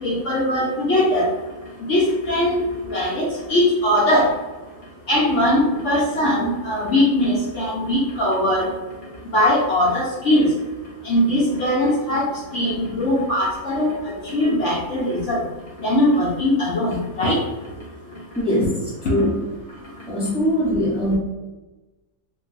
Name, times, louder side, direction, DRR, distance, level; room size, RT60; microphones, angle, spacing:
voice 1, 0.0-1.3 1.9-2.6 2.9-4.3 5.1-8.7 9.3-10.5 11.0-15.4 15.8-17.4, left 1 dB, 65° left, -5 dB, 0.8 m, -20 dB
voice 2, 18.3-18.7 19.1-19.4 20.1-21.2, equal, 5° right, -9 dB, 0.7 m, -21 dB
3.7 x 2.1 x 2.6 m, 1.1 s
omnidirectional pair, 1.6 m